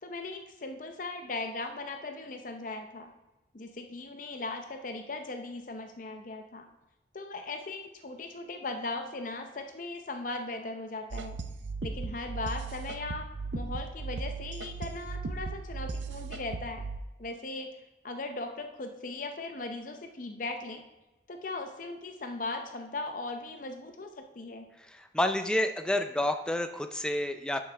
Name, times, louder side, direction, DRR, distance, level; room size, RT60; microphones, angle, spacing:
voice 1, 0.0-3.1 3.5-6.7 7.1-11.4 11.8-16.8 17.2-17.7 18.0-20.8 21.3-24.7, left 2 dB, 45° left, 5 dB, 0.6 m, -38 dB
sound 1, 11.1-17.0, right 4 dB, 85° right, 0.5 m, -37 dB
voice 2, 24.9-27.6, left 1 dB, 5° left, 6 dB, 0.4 m, -29 dB
11.0 x 5.5 x 3.4 m, 1.1 s
head